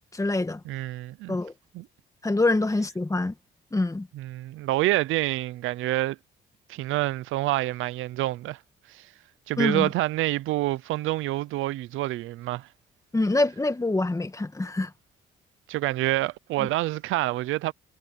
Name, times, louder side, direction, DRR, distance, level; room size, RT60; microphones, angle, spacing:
voice 1, 0.1-0.6 1.3-1.5 2.2-3.3 3.7-4.1 9.6-9.9 13.1-14.9 16.6-16.7, left 2 dB, 15° left, 1.9 m, -25 dB
voice 2, 0.6-1.4 1.7-1.9 4.1-6.2 6.7-8.6 8.9-9.1 9.5-12.7 15.7-17.7, right 16 dB, 85° right, 0.6 m, -27 dB
cardioid pair, 90°, 20 cm